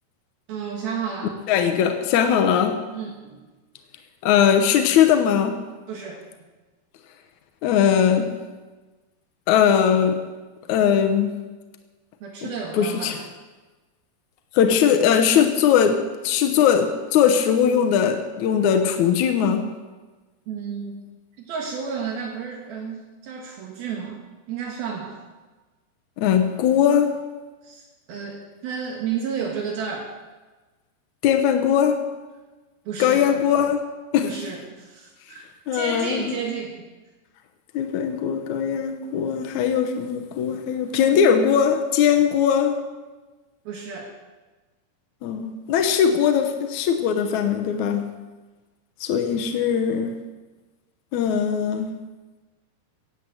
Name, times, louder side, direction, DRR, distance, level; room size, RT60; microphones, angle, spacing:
voice 1, 0.5-1.3 2.9-3.4 5.9-6.2 12.2-13.1 20.5-21.1 21.4-25.2 27.6-30.1 32.9-33.3 34.2-36.8 43.7-44.1, right 6 dB, 70° right, 3.2 m, -32 dB
voice 2, 1.5-2.8 4.2-5.6 7.6-8.3 9.5-10.2 10.7-11.4 12.4-13.2 14.5-19.7 26.2-27.2 31.2-32.0 33.0-33.8 34.1-34.3 35.7-36.4 37.7-42.8 45.2-48.1 49.0-50.1 51.1-51.9, left 8 dB, 80° left, 1.7 m, -20 dB
17.0 x 8.8 x 7.8 m
omnidirectional pair, 4.8 m